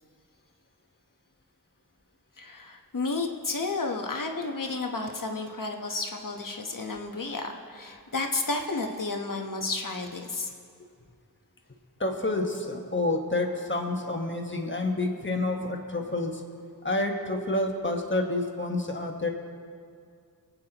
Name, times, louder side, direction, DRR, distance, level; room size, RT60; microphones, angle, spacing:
voice 1, 2.4-10.5, left 3 dB, 60° left, 3 dB, 1.2 m, -32 dB
voice 2, 12.0-16.4 16.8-19.3, left 2 dB, 30° left, 2 dB, 1.4 m, -29 dB
22.5 x 8.5 x 3.0 m, 2.2 s
wide cardioid pair, 45°, 37 cm